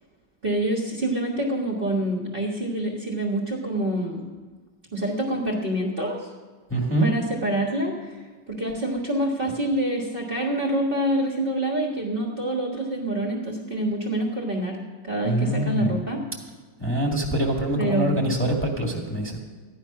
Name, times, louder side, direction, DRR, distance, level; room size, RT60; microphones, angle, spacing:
voice 1, 0.4-4.2 4.9-6.3 7.0-8.2 8.5-14.8 15.0-16.2 17.8-18.3, right 1 dB, 30° right, -2 dB, 1.5 m, -26 dB
voice 2, 6.7-7.1 15.2-16.0 16.8-19.4, right 1 dB, 5° left, 0 dB, 1.6 m, -24 dB
14.0 x 10.5 x 5.6 m, 1.4 s
omnidirectional pair, 2.0 m